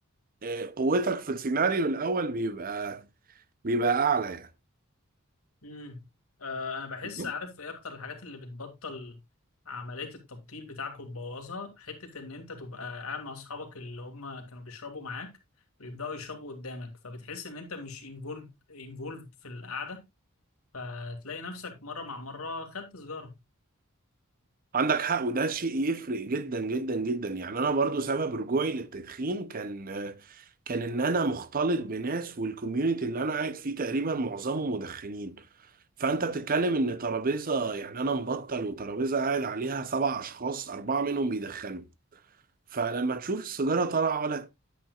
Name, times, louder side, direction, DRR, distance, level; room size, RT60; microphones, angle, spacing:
voice 1, 0.4-3.1 3.6-4.5 7.2-7.3 24.7-35.5 36.0-41.9 42.7-44.5, right 3 dB, 40° right, 0.7 m, -29 dB
voice 2, 5.6-6.1 6.4-9.2 9.7-15.3 15.8-20.0 20.7-23.3, left 4 dB, 85° left, 2.3 m, -39 dB
10.0 x 8.9 x 2.4 m
head